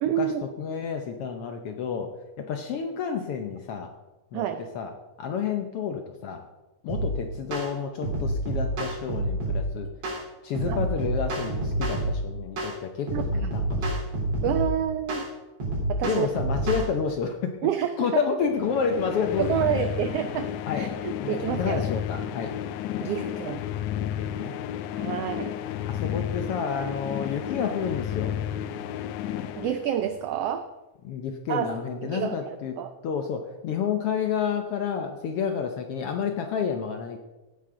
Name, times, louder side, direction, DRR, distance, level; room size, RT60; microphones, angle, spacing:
voice 1, 0.0-0.4 4.3-4.6 10.7-10.9 13.1-13.5 14.4-15.2 15.9-16.3 17.6-18.2 19.4-21.8 23.0-23.6 25.0-25.6 29.6-30.7 31.5-31.7 32.0-32.9, right 10 dB, 90° right, 9 dB, 1.3 m, -28 dB
voice 2, 0.6-2.1 2.4-3.9 4.3-4.4 4.7-4.9 5.2-6.4 6.8-9.9 10.4-14.0 16.0-17.7 18.0-19.8 20.7-20.9 21.2-22.5 24.2-24.5 25.1-25.3 25.9-28.3 31.0-32.8 33.0-37.2, left 6 dB, 70° left, 5 dB, 1.4 m, -30 dB
sound 1, 6.9-7.1 7.5-7.7 8.0-9.6 10.0-10.2 10.6-12.2 12.6-12.8 13.1-14.7 15.1-15.3 15.6-16.9, right 1 dB, 60° right, 4.6 m, -28 dB
sound 2, 18.5-30.3, left 10 dB, 85° left, 2.2 m, -32 dB
16.5 x 9.2 x 3.8 m, 1.1 s
omnidirectional pair, 3.5 m